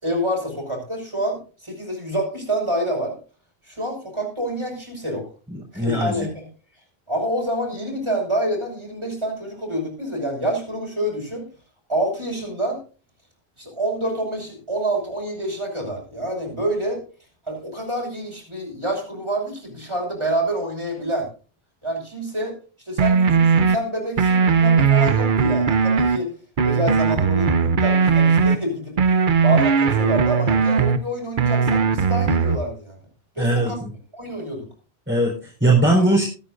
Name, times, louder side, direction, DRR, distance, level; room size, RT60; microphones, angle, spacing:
voice 1, 0.0-3.2 3.7-5.2 5.7-6.5 7.1-11.5 11.9-12.8 13.6-17.0 17.5-21.3 21.8-22.5 22.9-26.3 26.6-29.0 29.4-33.0 33.4-33.8 34.1-34.7, right 1 dB, 25° right, 0 dB, 5.8 m, -27 dB
voice 2, 5.5-6.3 33.4-33.9 35.1-36.2, right 2 dB, 10° right, -4 dB, 4.2 m, -20 dB
sound 1, 23.0-23.8 24.2-26.2 26.6-28.6 29.0-31.0 31.4-32.6, right 5 dB, 55° right, 0.9 m, -18 dB
21.5 x 9.5 x 2.6 m, 0.35 s
omnidirectional pair, 1.1 m